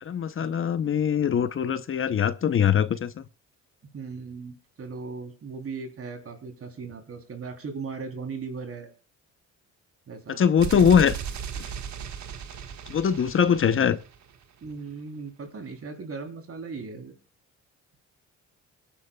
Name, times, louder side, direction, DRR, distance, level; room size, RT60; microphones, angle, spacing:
voice 1, 0.0-3.2 10.3-11.1 11.6-11.7 12.9-14.0, left 8 dB, 45° left, 0.8 m, -22 dB
voice 2, 3.9-8.9 10.1-10.4 10.7-10.9 14.6-17.1, right 4 dB, 50° right, 3.4 m, -37 dB
sound 1, 10.6-14.4, right 7 dB, 65° right, 1.6 m, -36 dB
24.5 x 10.5 x 2.3 m
cardioid pair, 90°, 30 cm